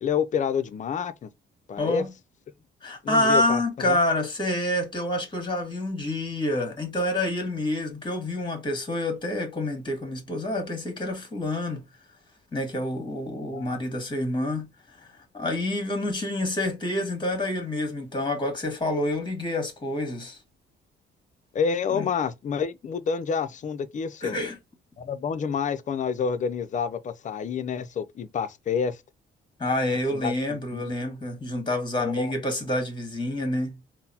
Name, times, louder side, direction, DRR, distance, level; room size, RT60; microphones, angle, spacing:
voice 1, 0.0-1.3 1.7-2.0 3.0-4.0 13.5-13.8 21.5-24.4 25.0-29.0 30.1-30.9 32.0-32.3, left 6 dB, 40° left, 0.4 m, -28 dB
voice 2, 1.8-2.1 2.8-11.8 12.5-14.7 15.3-20.4 21.9-22.1 24.2-24.5 29.6-33.8, left 1 dB, 25° left, 1.6 m, -27 dB
3.8 x 2.1 x 2.7 m
cardioid pair, 90°, 20 cm